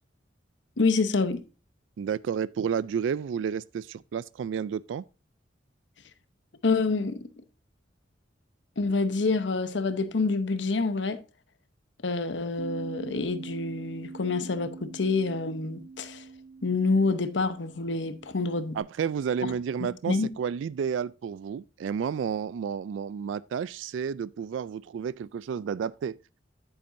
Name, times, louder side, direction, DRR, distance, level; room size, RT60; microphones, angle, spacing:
voice 1, 0.8-1.4 6.6-7.3 8.8-11.2 12.0-16.2 16.6-18.8 20.1-20.3, left 3 dB, 70° left, 0.9 m, -27 dB
voice 2, 2.0-5.0 18.7-26.2, right 7 dB, 85° right, 0.3 m, -31 dB
Bass guitar, 12.6-18.8, right 4 dB, 30° right, 4.4 m, -44 dB
10.5 x 8.7 x 2.6 m
head